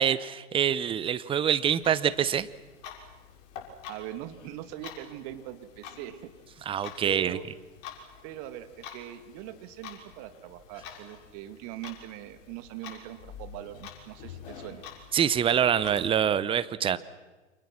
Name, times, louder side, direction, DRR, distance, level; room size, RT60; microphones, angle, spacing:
voice 1, 0.0-2.5 6.7-7.4 15.1-17.0, right 9 dB, 15° right, 16 dB, 0.9 m, -25 dB
Clock, 1.6-16.1, left 7 dB, 40° left, 5.8 m, -47 dB
voice 2, 3.9-6.3 7.0-7.5 8.2-14.8, right 13 dB, 40° right, 9 dB, 2.3 m, -41 dB
29.5 x 27.0 x 6.1 m, 1.2 s
figure-of-eight pair, 105°, 37 cm